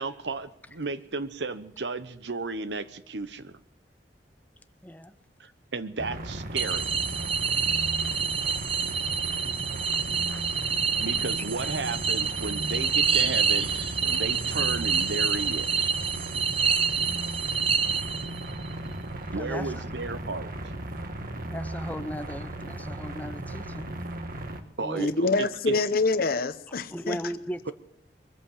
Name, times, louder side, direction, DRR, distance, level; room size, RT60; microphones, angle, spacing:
voice 1, 0.0-3.5 5.4-6.9 11.0-15.9 19.3-20.5 24.8-25.8, right 3 dB, 85° right, 1.0 m, -34 dB
voice 2, 4.8-5.1 10.3-10.4 19.3-19.8 21.5-23.9 24.8-25.1 26.9-27.7, equal, 10° left, 0.7 m, -37 dB
sound 1, 6.0-24.6, right 1 dB, 55° right, 1.4 m, -36 dB
sound 2, 6.6-18.5, right 6 dB, 35° right, 0.8 m, -27 dB
voice 3, 25.0-27.2, left 3 dB, 55° left, 0.8 m, -26 dB
22.5 x 8.4 x 7.3 m
head